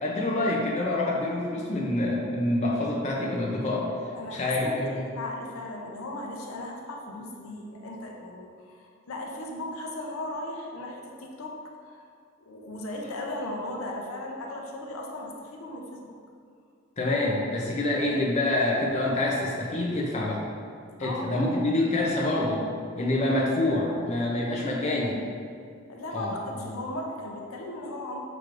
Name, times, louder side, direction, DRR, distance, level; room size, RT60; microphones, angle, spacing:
voice 1, 0.0-3.9 4.3-5.1 17.0-20.4 21.0-22.6 23.0-25.2 26.1-26.4, left 1 dB, 30° left, -3 dB, 0.4 m, -26 dB
voice 2, 4.1-11.5 11.8-12.1 12.4-16.1 21.0-21.4 25.9-28.2, left 1 dB, 80° left, 0 dB, 0.6 m, -37 dB
5.9 x 3.2 x 2.5 m, 2.3 s
head